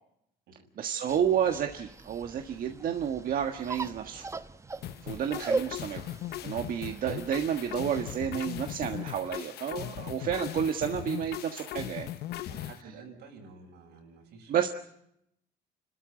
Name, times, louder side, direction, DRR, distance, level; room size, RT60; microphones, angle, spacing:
voice 1, 0.8-4.2 5.0-6.2 6.4-12.1 14.5-14.7, right 8 dB, 55° right, 5 dB, 1.6 m, -30 dB
sound 1, 1.1-8.2, right 3 dB, 15° right, 1.0 m, -39 dB
sound 2, 4.8-12.8, left 13 dB, 70° left, 0.9 m, -39 dB
voice 2, 6.8-7.1 10.2-10.4 12.5-14.5, right 4 dB, 85° right, 2 dB, 7.6 m, -51 dB
29.0 x 13.0 x 9.6 m, 0.77 s
cardioid pair, 110°, 17 cm